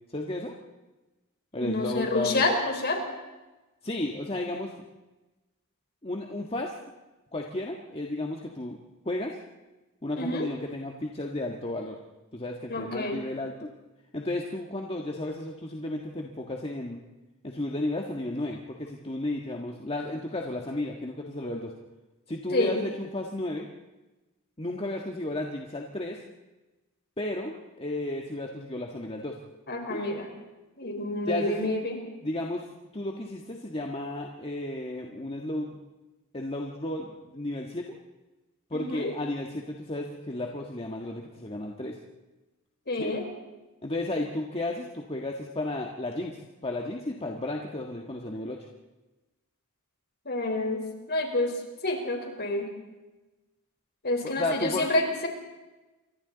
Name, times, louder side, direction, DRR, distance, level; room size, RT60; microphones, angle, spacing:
voice 1, 0.1-0.5 1.5-2.5 3.8-4.7 6.0-6.7 7.3-8.8 9.0-9.4 10.0-12.0 12.3-13.7 14.1-17.0 17.4-21.7 22.3-23.7 24.6-26.2 27.2-29.4 29.9-30.0 31.3-31.7 32.2-32.7 32.9-35.7 36.3-38.0 38.7-42.0 43.0-43.1 43.8-48.7 54.4-54.9, left 1 dB, 25° left, 1 dB, 1.5 m, -33 dB
voice 2, 1.6-3.0 10.2-10.5 12.7-13.2 22.5-22.8 29.7-30.3 30.8-32.0 38.7-39.1 42.9-43.3 50.2-50.8 51.1-51.6 51.8-52.7 54.0-55.3, left 2 dB, 45° left, 3 dB, 4.3 m, -28 dB
28.5 x 23.5 x 4.0 m, 1.1 s
head